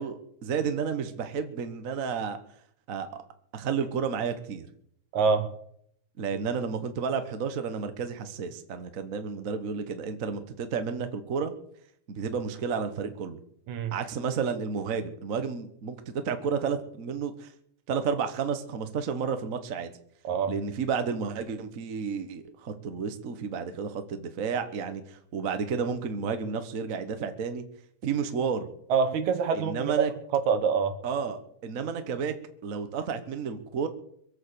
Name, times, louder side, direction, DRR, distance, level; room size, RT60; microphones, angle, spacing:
voice 1, 0.0-2.4 2.9-3.2 3.5-4.7 6.2-11.5 12.1-13.4 13.9-16.0 16.2-17.5 17.9-19.9 20.5-27.6 28.0-28.7 29.5-30.1 31.0-32.3 32.6-33.9, right 6 dB, 55° right, 8 dB, 0.9 m, -31 dB
voice 2, 5.1-5.5 13.7-13.9 20.2-20.6 28.9-30.0 30.3-31.0, right 6 dB, 75° right, 8 dB, 2.7 m, -25 dB
23.0 x 8.8 x 6.9 m, 0.71 s
omnidirectional pair, 3.3 m